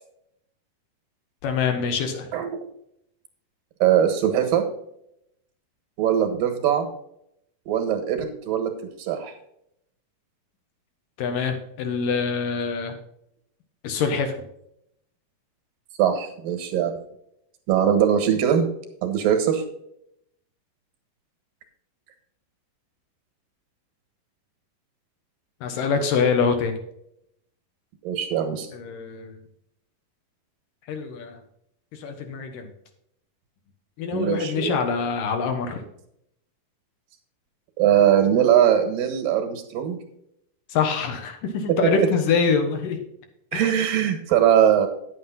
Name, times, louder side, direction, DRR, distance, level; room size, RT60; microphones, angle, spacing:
voice 1, 1.4-2.3 11.2-12.9 13.8-14.3 25.6-26.8 28.7-29.4 30.9-31.4 31.9-32.7 34.0-35.8 40.7-43.0 43.5-43.7, left 5 dB, 75° left, 5 dB, 3.0 m, -25 dB
voice 2, 2.3-2.7 3.8-4.6 6.0-6.9 7.7-8.7 9.0-9.3 16.0-17.0 17.7-18.7 19.0-19.6 28.0-28.7 34.1-34.7 37.8-40.0 42.0-42.1 43.5-44.9, right 9 dB, 90° right, 6 dB, 3.2 m, -21 dB
9.8 x 8.6 x 3.8 m, 0.75 s
omnidirectional pair, 3.9 m